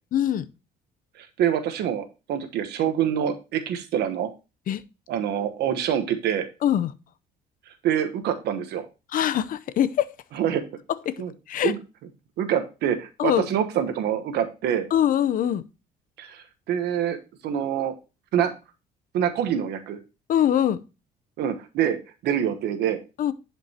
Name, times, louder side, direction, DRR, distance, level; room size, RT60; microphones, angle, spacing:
voice 1, 0.1-0.4 4.7-4.8 6.6-6.9 9.1-10.1 11.1-11.2 11.5-11.7 13.2-13.5 14.9-15.6 20.3-20.8 23.2-23.3, left 10 dB, 55° left, 0.7 m, -22 dB
voice 2, 1.2-4.3 5.1-6.5 7.8-8.9 10.3-10.6 11.2-11.3 11.6-11.8 12.4-14.9 16.2-17.2 17.4-17.9 18.3-18.5 19.1-20.0 21.4-22.0 22.2-23.0, right 9 dB, 75° right, 1.2 m, -25 dB
10.5 x 5.2 x 2.9 m
cardioid pair, 110°, 17 cm